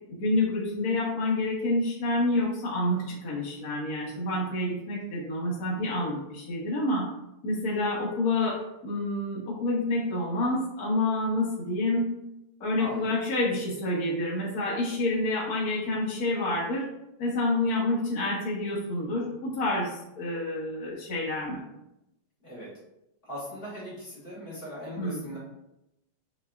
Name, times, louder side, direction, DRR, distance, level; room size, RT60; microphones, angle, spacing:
voice 1, 0.2-7.1 7.4-12.1 12.6-16.9 17.2-21.6 25.0-25.2, left 2 dB, 65° left, -6 dB, 0.9 m, -28 dB
voice 2, 12.8-13.1 22.4-22.7 23.2-25.4, equal, 25° left, -8 dB, 1.1 m, -39 dB
6.2 x 3.2 x 2.4 m, 0.87 s
omnidirectional pair, 3.4 m